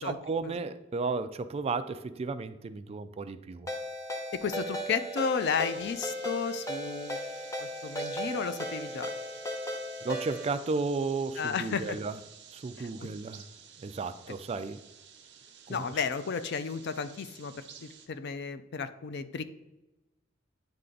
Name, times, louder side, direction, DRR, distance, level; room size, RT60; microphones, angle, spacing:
voice 1, 0.0-3.7 10.0-12.2 12.5-13.5 13.8-14.8 15.7-15.8, right 4 dB, 30° right, 11 dB, 0.3 m, -33 dB
Ringtone, 3.7-10.5, equal, 15° left, 0.9 m, -36 dB
voice 2, 4.3-7.2 7.6-9.1 11.4-12.0 12.8-13.1 15.7-19.4, left 6 dB, 60° left, 12 dB, 0.4 m, -33 dB
sound 1, 5.4-18.1, right 7 dB, 65° right, 0.9 m, -52 dB
9.0 x 3.3 x 3.9 m, 1.0 s
head